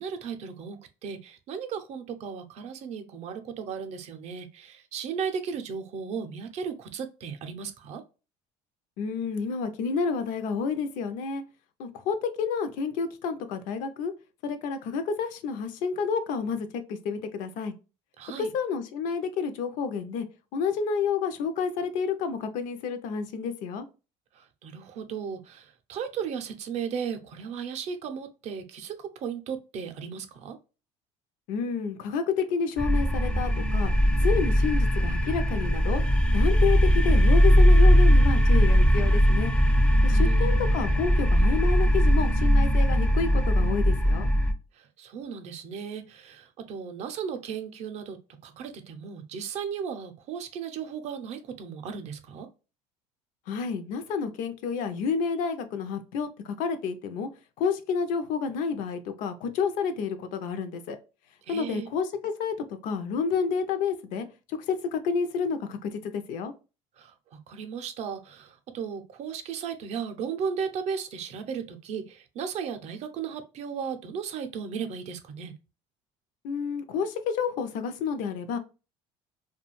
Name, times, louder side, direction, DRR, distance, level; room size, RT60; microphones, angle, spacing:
voice 1, 0.0-8.0 18.2-18.5 24.3-30.6 40.1-40.6 44.7-48.2 48.4-52.5 61.4-61.9 67.0-75.5, right 6 dB, 55° right, 8 dB, 0.5 m, -36 dB
voice 2, 9.0-11.4 11.8-14.1 14.4-17.7 18.4-20.3 20.5-23.9 31.5-33.9 34.2-36.0 36.3-39.5 40.0-44.3 53.5-57.3 57.6-61.0 61.5-66.5 76.4-78.6, left 5 dB, 70° left, 9 dB, 0.5 m, -30 dB
sound 1, 32.8-44.5, equal, 5° left, 0.4 m, -20 dB
2.4 x 2.2 x 3.0 m, 0.31 s
supercardioid pair, 100°, 14 cm